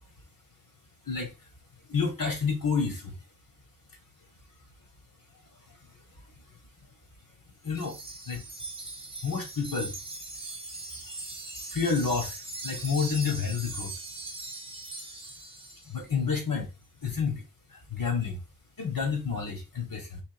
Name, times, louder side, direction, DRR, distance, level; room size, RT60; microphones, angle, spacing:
voice 1, 1.9-3.2 7.6-8.0 8.3-8.4 9.2-9.9 11.7-13.9 15.9-16.7 17.0-17.4 17.7-18.4 18.8-20.2, left 5 dB, 70° left, 2.2 m, -29 dB
Wind chime, 7.8-16.0, right 3 dB, 15° right, 0.9 m, -40 dB
4.2 x 3.0 x 4.3 m
wide cardioid pair, 60°, 35 cm